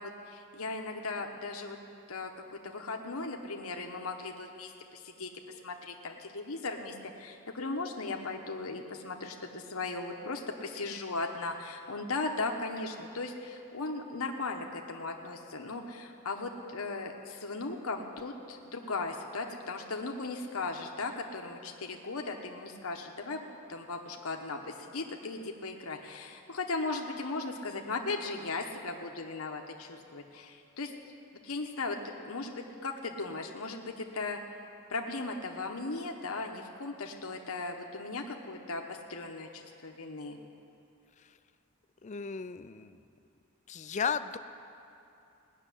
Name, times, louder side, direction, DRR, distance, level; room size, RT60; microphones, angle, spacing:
voice 1, 0.0-1.8 2.1-5.3 5.6-30.9 31.4-34.4 34.9-40.4, left 3 dB, 80° left, 2 dB, 1.1 m, -37 dB
voice 2, 42.0-43.0 43.7-44.4, left 6 dB, 35° left, 11 dB, 0.4 m, -35 dB
18.0 x 6.7 x 10.0 m, 2.8 s
head